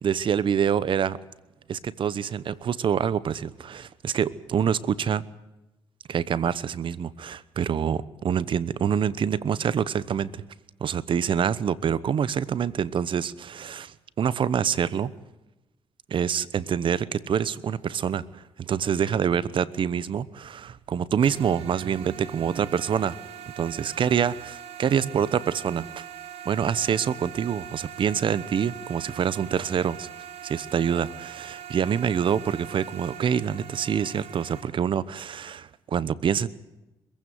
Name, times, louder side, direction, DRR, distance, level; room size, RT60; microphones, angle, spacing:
voice 1, 0.0-1.2 1.7-5.2 6.1-10.4 10.8-15.1 16.1-23.2 23.6-26.0 26.4-30.1 30.4-36.5, right 8 dB, 60° right, 19 dB, 1.0 m, -26 dB
sound 1, 21.2-34.6, right 9 dB, 80° right, 3.3 m, -42 dB
22.0 x 15.5 x 9.4 m, 0.99 s
cardioid pair, 75°, 10 cm